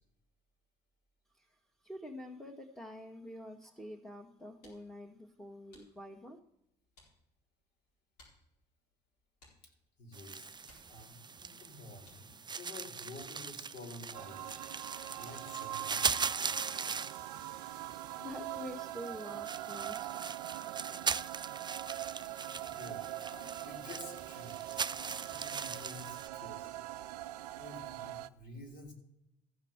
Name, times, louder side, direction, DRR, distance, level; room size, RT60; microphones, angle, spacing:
voice 1, 1.3-6.4 18.0-21.0, equal, 5° left, -1 dB, 1.6 m, -47 dB
sound 1, 4.2-12.5, left 1 dB, 90° left, 4.4 m, -67 dB
voice 2, 10.0-10.5 10.9-14.5 15.2-16.4 22.6-24.8 25.3-26.8 27.6-28.9, left 2 dB, 60° left, 2 dB, 3.8 m, -50 dB
sound 2, 10.1-26.3, right 5 dB, 20° right, 0.5 m, -40 dB
sound 3, 14.1-28.3, right 15 dB, 85° right, 0.4 m, -43 dB
14.0 x 5.8 x 7.3 m, 0.84 s
hypercardioid pair, 50°, 20 cm